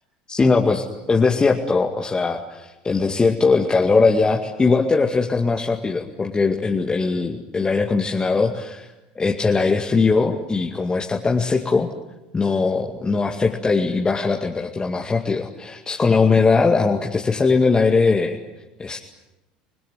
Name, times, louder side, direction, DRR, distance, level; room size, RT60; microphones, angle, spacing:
voice 1, 0.3-11.9 12.3-18.4 18.8-19.0, left 4 dB, 20° left, 1 dB, 2.2 m, -20 dB
28.5 x 21.5 x 9.5 m, 1.0 s
figure-of-eight pair, 70°, 4 cm